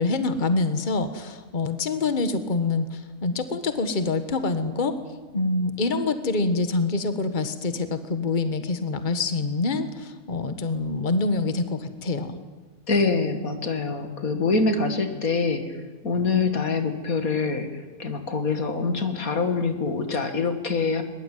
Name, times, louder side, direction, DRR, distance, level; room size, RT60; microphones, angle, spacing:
voice 1, 0.0-4.9 5.3-12.3, left 3 dB, 35° left, 10 dB, 1.6 m, -26 dB
voice 2, 12.9-15.8 16.0-21.0, left 4 dB, 85° left, 7 dB, 2.7 m, -25 dB
22.0 x 21.5 x 9.3 m, 1.3 s
omnidirectional pair, 1.4 m